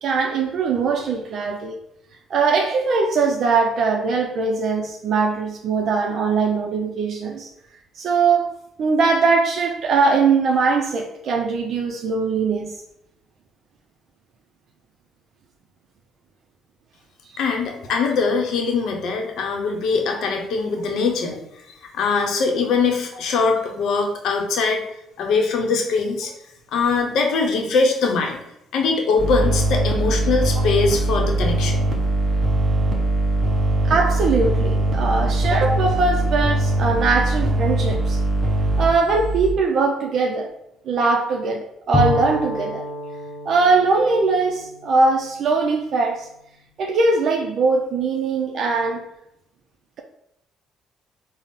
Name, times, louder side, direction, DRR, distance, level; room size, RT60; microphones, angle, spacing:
voice 1, 0.0-1.8 2.3-7.5 7.9-8.5 8.8-12.8 20.1-20.2 33.8-38.2 38.8-40.5 40.9-42.9 43.5-46.3 46.8-49.1, right 4 dB, 60° right, 0.4 m, -21 dB
voice 2, 17.4-21.4 21.9-24.8 25.2-26.3 26.7-28.4 28.7-31.8, left 4 dB, 70° left, 0.7 m, -22 dB
sound 1, 29.2-39.5, right 2 dB, 20° right, 1.0 m, -21 dB
Bowed string instrument, 41.9-45.7, left 2 dB, 30° left, 0.5 m, -28 dB
4.0 x 2.0 x 3.5 m
cardioid pair, 90°, 0 cm